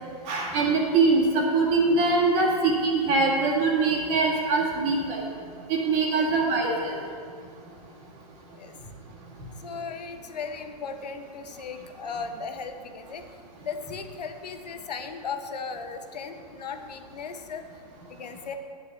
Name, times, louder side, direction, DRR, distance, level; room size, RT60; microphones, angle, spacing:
voice 1, 0.3-5.2 5.7-6.9, right 3 dB, 30° right, -2 dB, 1.9 m, -23 dB
voice 2, 9.6-13.2 13.6-17.6 18.1-18.5, left 5 dB, 70° left, 7 dB, 1.0 m, -36 dB
11.5 x 9.7 x 3.3 m, 2.1 s
hypercardioid pair, 135°, 21 cm